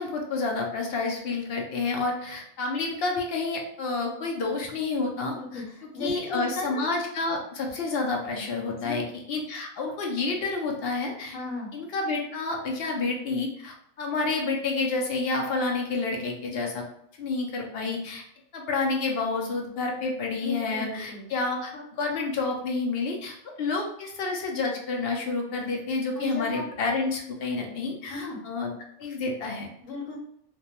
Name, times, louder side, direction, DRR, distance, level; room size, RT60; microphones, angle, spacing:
voice 1, 0.0-5.6 6.0-11.3 11.7-16.8 17.2-18.2 18.5-21.7 22.0-28.7 29.0-29.7, left 3 dB, 65° left, 1 dB, 0.7 m, -29 dB
voice 2, 5.3-6.9 8.7-9.0 11.3-11.7 20.4-21.3 21.7-21.8 26.1-26.7 28.1-28.4 29.8-30.2, left 3 dB, 85° left, 0 dB, 1.1 m, -35 dB
2.3 x 2.1 x 2.8 m, 0.70 s
omnidirectional pair, 1.3 m